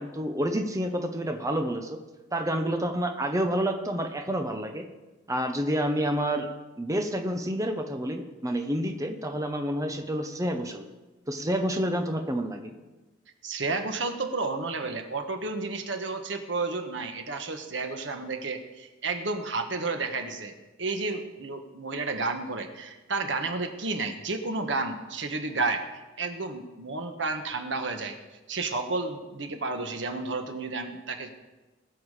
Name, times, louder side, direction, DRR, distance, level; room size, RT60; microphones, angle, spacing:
voice 1, 0.0-2.0 2.3-4.8 5.3-6.5 6.8-10.8 11.3-12.7, equal, 20° right, 5 dB, 1.0 m, -29 dB
voice 2, 13.4-25.8 26.2-28.2 28.5-31.3, right 3 dB, 80° right, 6 dB, 1.3 m, -31 dB
20.5 x 7.1 x 5.0 m, 1.1 s
head